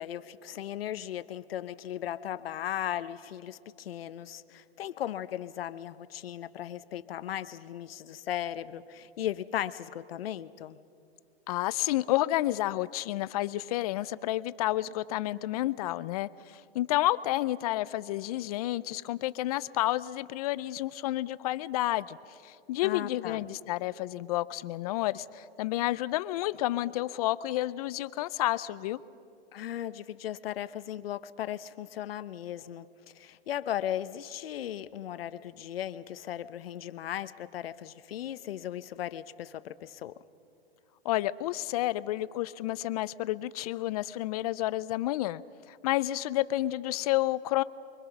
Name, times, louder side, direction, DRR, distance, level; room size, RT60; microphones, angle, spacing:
voice 1, 0.0-10.8 22.8-23.5 29.5-32.9 33.1-40.2, left 11 dB, 65° left, 13 dB, 1.0 m, -37 dB
voice 2, 11.5-16.3 16.7-22.2 22.4-29.0 41.0-45.4 45.7-47.6, left 16 dB, 35° left, 17 dB, 0.6 m, -30 dB
29.0 x 23.5 x 5.9 m, 2.5 s
hypercardioid pair, 140°, 32 cm